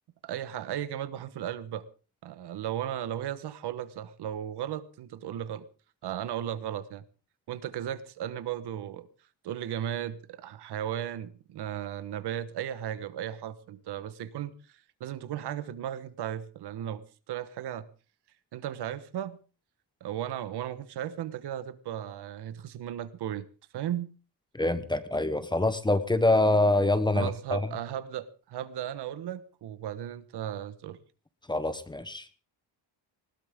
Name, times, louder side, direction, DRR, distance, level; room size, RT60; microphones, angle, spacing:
voice 1, 0.2-1.9 2.2-5.7 6.0-7.0 7.5-9.1 9.4-14.5 15.0-17.9 18.5-19.4 20.0-23.5 23.7-24.1 27.1-31.0, right 10 dB, 70° right, 1.3 m, -35 dB
voice 2, 24.5-27.6 31.5-32.4, left 2 dB, 10° left, 0.9 m, -25 dB
20.0 x 17.5 x 3.7 m
cardioid pair, 160°, 41 cm